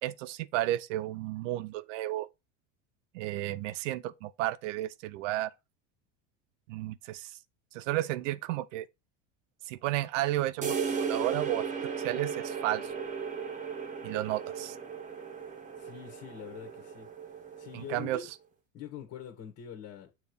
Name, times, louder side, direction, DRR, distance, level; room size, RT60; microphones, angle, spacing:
voice 1, 0.0-2.3 3.1-5.5 6.7-7.3 7.7-8.9 9.7-10.8 11.1-11.6 12.0-12.9 14.0-14.8 17.7-18.3, right 15 dB, 80° right, 0.7 m, -32 dB
sound 1, 10.6-18.1, right 6 dB, 20° right, 1.1 m, -36 dB
voice 2, 15.8-17.1 17.6-18.3 18.7-20.1, left 9 dB, 40° left, 1.6 m, -44 dB
7.3 x 3.2 x 5.2 m
supercardioid pair, 125°, 37 cm